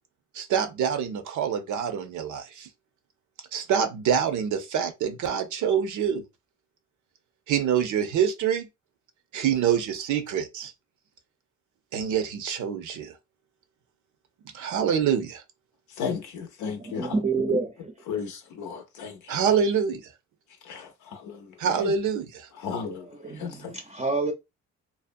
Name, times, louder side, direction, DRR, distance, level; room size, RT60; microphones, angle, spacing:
voice 1, 0.3-2.7 3.5-6.2 7.5-8.7 9.3-10.7 11.9-13.1 14.5-15.4 19.3-20.1 21.6-22.5, right 8 dB, 75° right, 0.7 m, -26 dB
voice 2, 15.9-17.2 18.1-19.6 20.6-21.9 22.6-23.7, left 6 dB, 85° left, 0.6 m, -35 dB
voice 3, 16.8-17.7 23.2-23.6 23.9-24.3, right 3 dB, 20° right, 0.5 m, -27 dB
2.7 x 2.0 x 2.5 m
cardioid pair, 90°, 30 cm